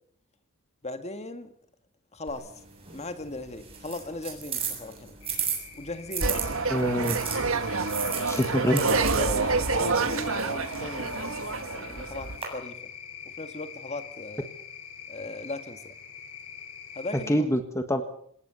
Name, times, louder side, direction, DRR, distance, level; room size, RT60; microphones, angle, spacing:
voice 1, 0.8-1.5 2.1-2.5 2.9-5.1 5.7-6.6 8.7-12.9 13.4-14.5 15.1-15.9 17.0-17.5, left 2 dB, 30° left, 1.8 m, -38 dB
sound 1, 2.3-6.4 7.0-12.4, right 7 dB, 25° right, 7.8 m, -36 dB
sound 2, 5.2-17.4, left 7 dB, 75° left, 6.8 m, -44 dB
sound 3, 6.2-12.4, right 4 dB, 60° right, 1.7 m, -27 dB
voice 2, 6.7-7.2 8.3-8.8 17.3-18.0, equal, 15° left, 1.6 m, -25 dB
27.5 x 18.0 x 7.0 m
head